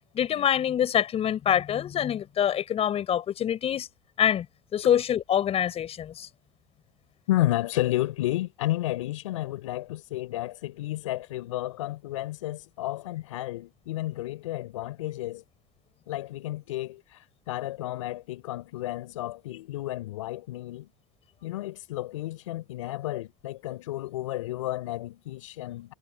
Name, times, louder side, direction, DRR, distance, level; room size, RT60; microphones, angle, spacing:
voice 1, 0.1-3.9 4.2-4.4 4.7-6.3, left 10 dB, 40° left, 6.8 m, -25 dB
voice 2, 7.3-15.4 16.1-20.9 21.4-25.9, left 16 dB, 85° left, 6.6 m, -32 dB
supercardioid pair, 105°, 16 cm